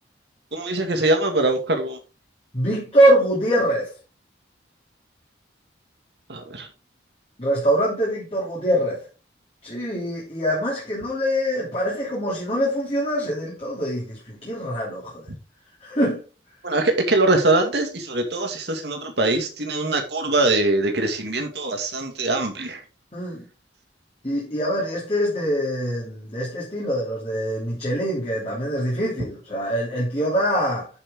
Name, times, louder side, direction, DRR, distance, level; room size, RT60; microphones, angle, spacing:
voice 1, 0.5-2.0 6.3-6.7 16.6-22.8, right 2 dB, 65° right, 2.3 m, -22 dB
voice 2, 2.5-3.9 7.4-9.0 9.6-15.2 15.8-16.2 23.1-23.5 24.2-30.9, equal, 30° left, 3.2 m, -24 dB
10.0 x 6.9 x 3.8 m
head